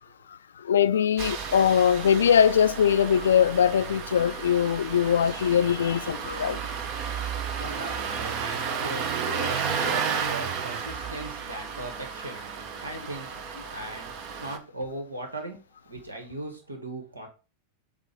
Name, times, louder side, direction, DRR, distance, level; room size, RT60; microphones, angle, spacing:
voice 1, 0.3-6.6 9.8-9.9, left 8 dB, 65° left, 0.3 m, -22 dB
Engine starting, 1.2-14.6, right 6 dB, 40° right, 0.8 m, -33 dB
voice 2, 7.6-13.4 13.7-14.1 14.4-15.6 15.9-17.3, right 2 dB, 75° right, 1.5 m, -39 dB
7.5 x 2.5 x 5.3 m
figure-of-eight pair, 90°, 0 cm